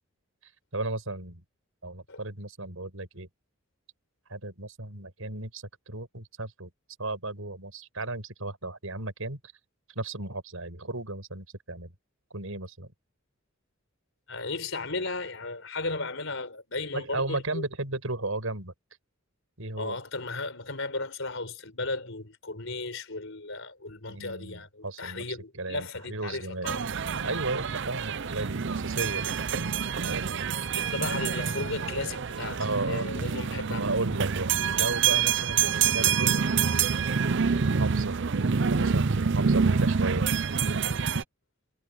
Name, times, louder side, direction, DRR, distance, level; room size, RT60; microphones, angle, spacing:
voice 1, 0.7-1.4 1.8-3.3 4.3-6.7 7.0-9.4 10.0-11.9 12.3-12.9 16.9-18.7 19.6-20.0 24.1-26.7 27.2-29.3 30.0-30.4 32.6-33.3 33.7-36.5 37.5-38.2 38.7-40.2, right 2 dB, 75° right, 5.7 m, -34 dB
voice 2, 14.3-17.6 19.8-26.8 30.7-33.8, left 3 dB, 60° left, 5.1 m, -35 dB
sound 1, 26.6-41.2, right 6 dB, 55° right, 0.6 m, -27 dB
head